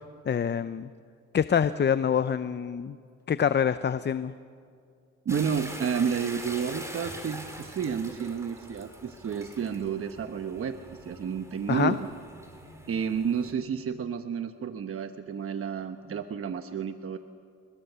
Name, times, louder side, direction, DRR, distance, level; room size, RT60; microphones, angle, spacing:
voice 1, 0.3-0.9 1.3-3.0 3.3-4.3 11.7-11.9, left 8 dB, 35° left, 13 dB, 0.7 m, -25 dB
voice 2, 5.2-12.1 12.9-17.2, right 7 dB, 50° right, 8 dB, 1.1 m, -31 dB
sound 1, 5.3-13.5, right 1 dB, 10° right, 4.9 m, -43 dB
28.5 x 22.0 x 7.0 m, 2.3 s
cardioid pair, 90°, 30 cm